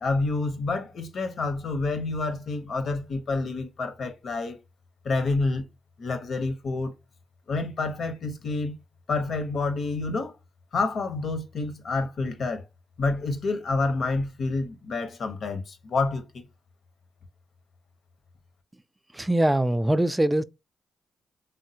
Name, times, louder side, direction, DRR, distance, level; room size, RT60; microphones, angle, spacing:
voice 1, 0.0-4.6 5.0-5.7 6.0-6.9 7.5-8.8 9.1-10.3 10.7-12.6 13.0-16.5, left 3 dB, 60° left, 0.7 m, -28 dB
voice 2, 19.1-20.4, right 1 dB, 15° right, 0.3 m, -22 dB
3.5 x 2.1 x 2.7 m
hypercardioid pair, 45°, 0 cm